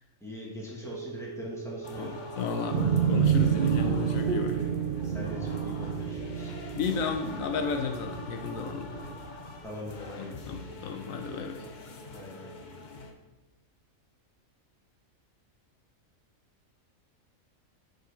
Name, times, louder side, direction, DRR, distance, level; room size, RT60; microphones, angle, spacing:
voice 1, 0.2-2.2 5.0-6.5 9.6-10.6 12.1-12.5, left 1 dB, ahead, -4 dB, 1.7 m, -41 dB
sound 1, 0.8-9.1, right 8 dB, 40° right, 1.8 m, -48 dB
sound 2, 1.8-13.1, left 3 dB, 45° left, 0.7 m, -44 dB
voice 2, 2.0-4.6 6.7-9.0 10.2-11.7, left 5 dB, 80° left, 6 dB, 1.0 m, -33 dB
sound 3, 2.7-9.3, right 8 dB, 60° right, 0.6 m, -29 dB
6.3 x 4.8 x 5.0 m, 1.1 s
omnidirectional pair, 1.5 m